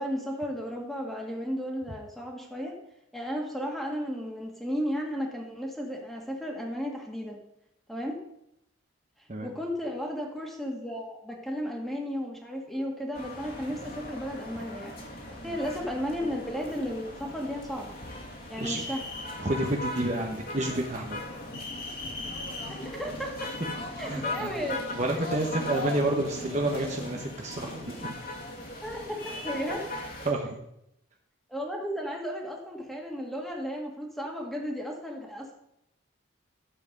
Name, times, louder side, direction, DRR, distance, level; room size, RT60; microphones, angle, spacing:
voice 1, 0.0-2.7 3.1-7.4 7.9-8.2 9.4-15.0 15.4-17.9 18.5-19.0 22.9-23.5 24.0-24.8 25.1-25.2 28.8-29.2 29.4-29.9 30.4-30.5 31.5-35.5, equal, ahead, -1 dB, 1.9 m, -34 dB
sound 1, 13.1-30.3, left 1 dB, 45° left, 2.1 m, -38 dB
voice 2, 18.6-19.0 19.4-21.2 24.0-24.5 24.9-28.2 30.2-30.6, right 1 dB, 35° right, 1 dB, 1.1 m, -30 dB
12.5 x 7.8 x 5.3 m, 0.81 s
head